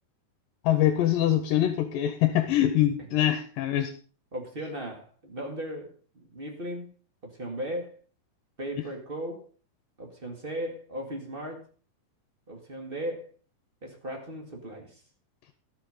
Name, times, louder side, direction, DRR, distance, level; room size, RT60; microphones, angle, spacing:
voice 1, 0.6-3.9, left 12 dB, 75° left, 9 dB, 2.4 m, -24 dB
voice 2, 4.3-6.9 7.2-8.0 8.6-9.5 10.0-11.7 12.5-13.3 13.8-15.0, right 1 dB, 25° right, 2 dB, 1.4 m, -37 dB
13.0 x 6.9 x 5.3 m, 0.38 s
omnidirectional pair, 4.2 m